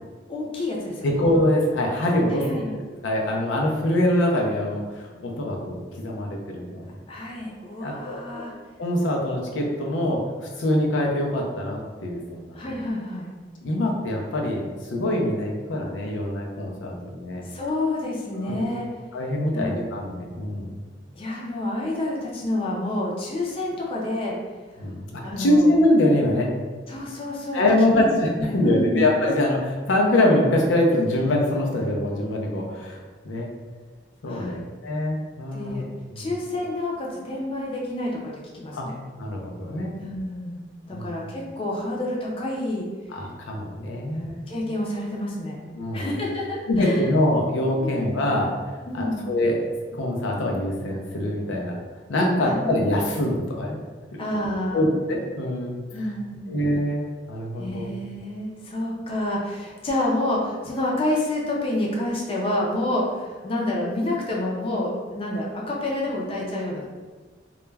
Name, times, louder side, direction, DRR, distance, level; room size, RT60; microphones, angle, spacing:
voice 1, 0.3-1.2 2.3-2.7 7.1-8.5 12.6-13.3 17.5-18.9 19.5-19.7 21.2-24.3 25.2-25.7 26.9-27.6 27.9-28.1 28.4-29.0 34.2-34.7 35.5-35.9 36.2-38.9 40.0-42.9 44.1-45.6 45.9-47.0 47.8-48.0 48.9-49.3 52.4-52.7 54.2-54.9 55.9-56.6 57.6-66.9, left 1 dB, 30° left, -3 dB, 0.5 m, -28 dB
voice 2, 1.0-2.6 3.0-7.0 7.8-8.5 8.8-10.2 10.6-12.6 13.6-17.4 18.3-18.6 19.1-20.8 24.8-26.5 27.5-33.5 34.2-35.8 36.1-36.3 38.7-38.9 39.2-39.9 40.9-41.1 43.1-44.3 45.7-46.1 46.7-48.5 48.9-49.7 49.9-51.8 52.1-53.8 54.7-56.1 56.5-57.9, left 1 dB, 90° left, 0 dB, 0.5 m, -24 dB
2.3 x 2.1 x 3.2 m, 1.4 s
head